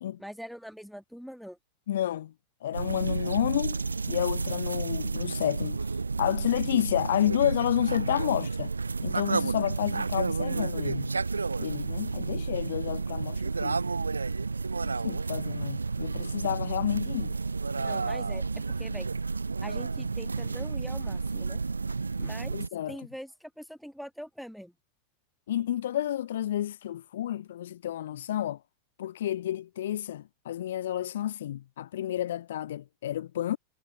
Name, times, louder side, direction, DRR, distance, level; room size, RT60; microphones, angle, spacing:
voice 1, 0.2-1.6 17.8-19.1 19.6-21.6 22.2-22.6 22.9-24.7, equal, ahead, 1.5 m, -43 dB
voice 2, 1.9-2.3 2.6-5.8 6.2-8.7 9.0-11.1 11.6-13.8 14.8-17.3 22.5-23.0 25.5-28.6 29.0-33.6, left 12 dB, 60° left, 0.7 m, -30 dB
sound 1, 2.7-22.7, right 4 dB, 80° right, 0.3 m, -31 dB
figure-of-eight pair, 90°, 0 cm